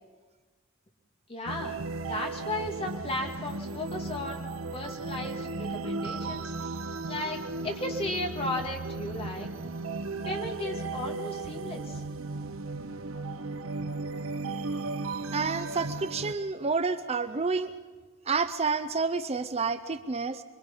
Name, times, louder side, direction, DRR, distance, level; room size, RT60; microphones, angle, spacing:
voice 1, 1.3-4.4 4.7-6.5 7.1-9.5 10.2-12.0, left 1 dB, 30° left, 1 dB, 2.5 m, -35 dB
sound 1, 1.5-16.3, right 3 dB, 75° right, 0.9 m, -35 dB
voice 2, 15.3-17.7 18.3-20.4, right 4 dB, 30° right, 10 dB, 0.6 m, -29 dB
25.5 x 23.5 x 5.6 m, 1.3 s
head